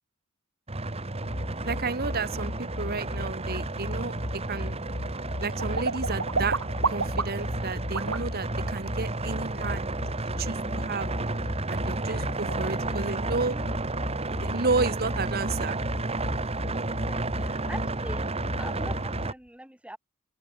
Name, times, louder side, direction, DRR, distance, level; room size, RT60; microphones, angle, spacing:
sound 1, 0.7-19.3, right 2 dB, 30° right, 1.8 m, -32 dB
sound 2, 1.2-19.3, left 1 dB, 55° left, 2.0 m, -37 dB
voice 1, 1.6-4.8 5.4-6.6 6.8-9.9 10.4-11.1 11.7-13.6 14.4-15.8 16.2-16.4, right 4 dB, 50° right, 1.7 m, -32 dB
sound 3, 4.8-7.5 7.9-8.2 11.7-11.8 12.2-12.6, right 4 dB, 70° right, 3.0 m, -30 dB
voice 2, 9.5-9.8 12.1-13.0 13.5-13.7 17.0-18.2 18.6-20.0, right 1 dB, 5° right, 6.7 m, -44 dB
open air
head